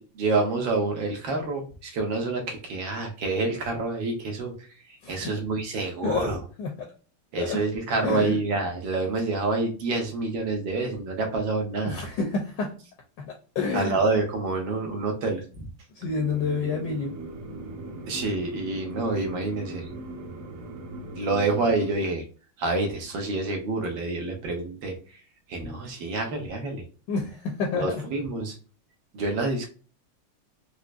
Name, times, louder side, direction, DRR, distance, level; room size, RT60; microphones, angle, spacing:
voice 1, 0.2-4.5 5.1-6.4 7.3-12.0 13.7-15.6 18.1-19.8 21.0-22.2 22.6-24.9 25.5-26.8 27.7-28.5 29.1-29.7, right 3 dB, 70° right, 2 dB, 1.6 m, -27 dB
voice 2, 6.0-6.9 7.4-7.6 8.0-8.4 11.8-12.8 13.5-14.0 15.9-17.1 27.1-28.0, left 4 dB, 65° left, 2 dB, 1.2 m, -28 dB
sound 1, 16.0-21.9, right 2 dB, 90° right, 1.7 m, -39 dB
4.6 x 2.1 x 2.4 m, 0.36 s
omnidirectional pair, 2.3 m